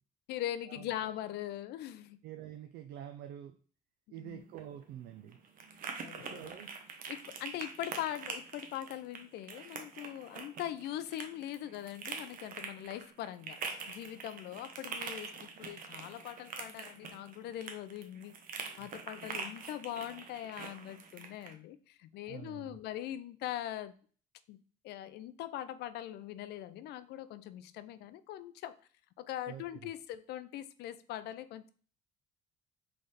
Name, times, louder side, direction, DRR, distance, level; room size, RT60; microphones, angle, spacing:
voice 1, 0.3-2.2 4.2-4.4 6.0-6.6 7.1-13.6 13.9-18.3 18.8-23.9 24.5-24.6 24.8-28.8 29.2-31.7, left 12 dB, 75° left, 14 dB, 0.4 m, -41 dB
voice 2, 2.2-3.6 4.1-5.4 6.1-6.7 18.8-18.9 22.3-22.8 29.5-29.9, right 11 dB, 75° right, 7 dB, 0.4 m, -47 dB
sound 1, 4.4-21.5, right 5 dB, 55° right, 0.8 m, -45 dB
3.9 x 3.3 x 4.0 m, 0.43 s
cardioid pair, 110°, 17 cm